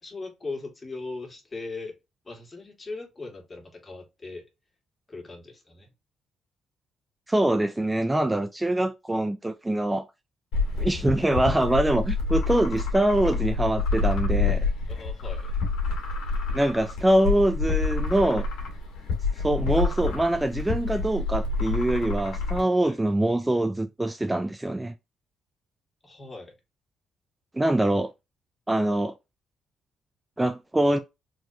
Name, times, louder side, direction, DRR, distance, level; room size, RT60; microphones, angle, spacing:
voice 1, 0.0-2.0 2.2-4.4 5.1-5.9 14.9-15.6 22.8-23.0 26.0-26.6, left 3 dB, 30° left, 2.0 m, -39 dB
voice 2, 7.3-10.1 10.8-14.6 16.5-18.5 19.4-24.9 27.5-28.1 28.7-29.1 30.4-31.0, right 1 dB, 10° right, 0.4 m, -24 dB
sound 1, 10.5-22.6, left 4 dB, 90° left, 1.7 m, -28 dB
4.2 x 3.0 x 2.8 m
cardioid pair, 90°, 0 cm